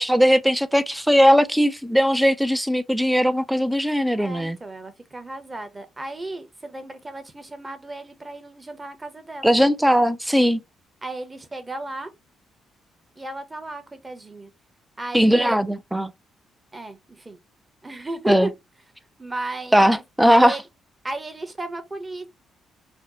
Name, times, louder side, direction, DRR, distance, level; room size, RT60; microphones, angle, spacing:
voice 1, 0.0-4.6 9.4-10.6 15.1-16.1 18.3-18.5 19.7-20.6, equal, 5° right, 0.4 m, -19 dB
voice 2, 4.1-9.6 11.0-12.1 13.2-14.5 15.0-15.6 16.7-17.4 17.8-18.5 19.2-20.0 20.3-20.6 21.0-22.3, right 2 dB, 20° right, 0.9 m, -34 dB
4.2 x 2.0 x 2.9 m
cardioid pair, 90°, 0 cm